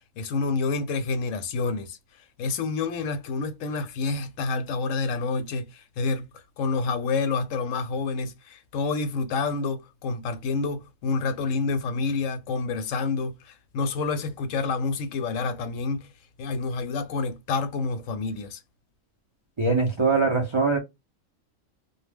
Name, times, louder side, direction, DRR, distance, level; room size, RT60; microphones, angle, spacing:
voice 1, 0.2-2.0 2.4-16.1 16.4-18.6, left 4 dB, 70° left, 0.9 m, -28 dB
voice 2, 19.6-20.8, right 4 dB, 55° right, 0.3 m, -22 dB
2.3 x 2.1 x 3.4 m
omnidirectional pair, 1.4 m